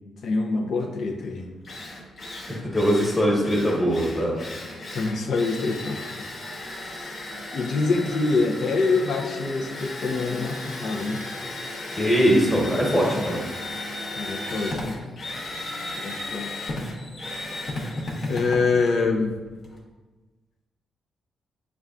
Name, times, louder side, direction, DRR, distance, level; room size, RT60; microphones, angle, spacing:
voice 1, 0.2-1.5 4.9-6.2 7.0-7.2 7.5-11.2 14.1-15.0 16.0-16.7 18.3-19.4, left 3 dB, 65° left, 2 dB, 0.5 m, -25 dB
Drill, 1.2-1.3 1.6-19.8, left 1 dB, 45° left, 0.9 m, -35 dB
voice 2, 2.5-4.4 11.9-13.4, equal, 20° left, -4 dB, 1.2 m, -21 dB
6.7 x 2.3 x 2.4 m, 1.3 s
cardioid pair, 75°, 0 cm